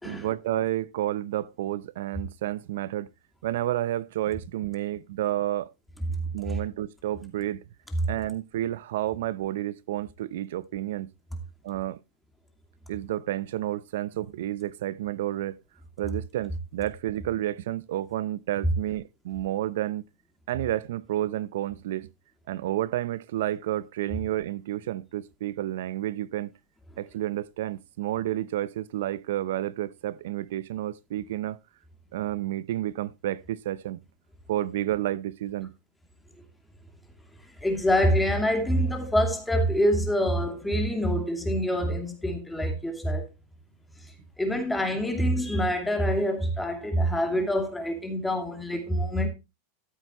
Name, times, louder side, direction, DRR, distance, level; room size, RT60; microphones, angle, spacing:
voice 1, 0.0-3.1 3.4-5.7 6.3-7.6 8.1-11.1 11.6-12.0 12.9-15.6 16.0-20.0 20.5-22.1 22.5-26.5 27.0-31.6 32.1-34.0 34.5-35.7, right 13 dB, 75° right, 0.6 m, -30 dB
voice 2, 37.6-43.2 44.0-49.3, equal, 5° left, 2.5 m, -26 dB
14.0 x 8.0 x 2.9 m
supercardioid pair, 140°, 0 cm